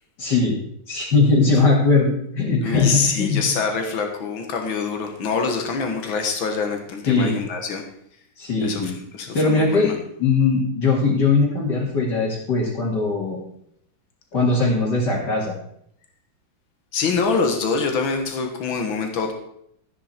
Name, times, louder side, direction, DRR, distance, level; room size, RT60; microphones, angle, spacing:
voice 1, 0.2-0.6 0.9-3.4 7.0-7.3 8.4-9.0 9.3-9.9 10.2-13.4 14.3-15.5, left 3 dB, 60° left, -5 dB, 3.0 m, -20 dB
voice 2, 2.6-7.8 8.6-10.0 16.9-19.3, left 5 dB, 90° left, 4 dB, 2.2 m, -25 dB
14.0 x 9.3 x 4.4 m, 0.70 s
omnidirectional pair, 2.1 m